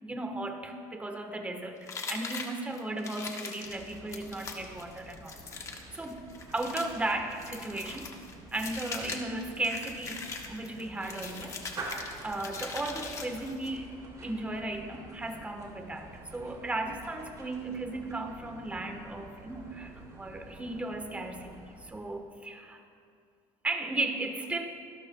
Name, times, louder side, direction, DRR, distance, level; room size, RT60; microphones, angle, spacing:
voice 1, 0.0-6.2 6.5-8.1 8.5-11.6 11.8-13.9 14.2-22.8 23.6-24.7, right 2 dB, 10° right, 4 dB, 1.2 m, -36 dB
sound 1, 1.9-13.8, left 4 dB, 30° left, 1.2 m, -41 dB
sound 2, 3.6-22.3, right 2 dB, 35° right, 2.8 m, -48 dB
25.5 x 12.0 x 2.3 m, 2.3 s
cardioid pair, 135°, 11 cm